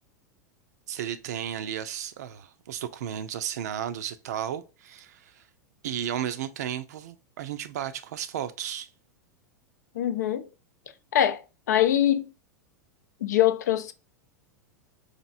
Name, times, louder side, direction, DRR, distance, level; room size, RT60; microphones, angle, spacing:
voice 1, 0.9-5.4 5.8-8.9, right 10 dB, 65° right, 0.5 m, -34 dB
voice 2, 10.0-10.5 11.1-11.4 11.7-12.3 13.2-13.9, left 11 dB, 70° left, 0.4 m, -23 dB
4.3 x 2.6 x 2.4 m
figure-of-eight pair, 95°, 10 cm